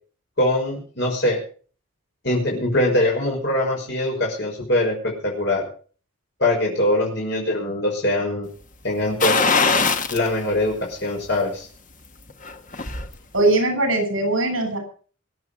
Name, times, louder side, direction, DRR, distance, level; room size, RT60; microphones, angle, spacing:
voice 1, 0.4-1.4 2.2-5.7 6.4-8.5 8.8-9.5 10.1-11.7, left 1 dB, 55° left, -1 dB, 6.0 m, -22 dB
sound 1, 9.2-10.3 10.7-10.8 12.3-13.1 13.4-13.5, left 4 dB, 40° left, 1.6 m, -20 dB
voice 2, 13.3-14.8, right 2 dB, 70° right, 5 dB, 7.6 m, -20 dB
25.5 x 8.6 x 5.1 m, 0.41 s
head